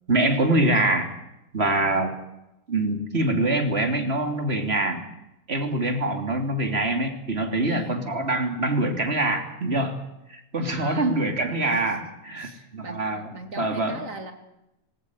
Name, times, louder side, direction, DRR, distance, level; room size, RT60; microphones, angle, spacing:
voice 1, 0.1-1.1 1.5-2.1 2.7-5.0 5.5-10.0 10.3-13.3 13.6-14.0, right 2 dB, 45° right, 5 dB, 3.5 m, -24 dB
voice 2, 7.6-8.2 10.7-11.2 12.4-13.1 13.3-14.3, right 3 dB, 60° right, 6 dB, 3.4 m, -38 dB
21.0 x 18.5 x 9.7 m, 0.88 s
omnidirectional pair, 1.5 m